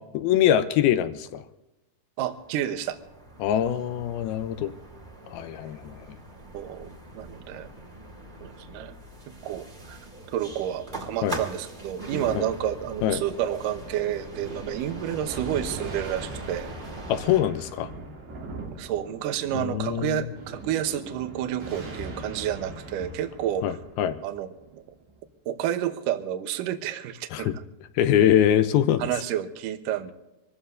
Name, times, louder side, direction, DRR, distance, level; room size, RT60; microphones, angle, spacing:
voice 1, 0.1-1.4 3.4-4.7 5.3-6.2 11.2-11.4 12.3-12.4 13.0-13.2 17.1-17.9 19.5-20.3 23.6-24.2 27.3-27.6 28.0-29.1, left 10 dB, 80° left, 10 dB, 2.5 m, -23 dB
voice 2, 2.2-3.0 6.5-6.9 7.1-7.7 8.4-8.9 9.3-10.0 10.3-16.7 18.7-23.6 24.2-24.5 24.7-24.8 25.5-27.5 29.0-30.1, right 11 dB, 70° right, 8 dB, 2.3 m, -30 dB
sound 1, 2.3-17.4, right 2 dB, 40° right, 0.6 m, -42 dB
Thunder, 14.3-25.2, right 2 dB, 90° right, 5.4 m, -40 dB
26.0 x 14.5 x 2.7 m, 0.97 s
omnidirectional pair, 4.8 m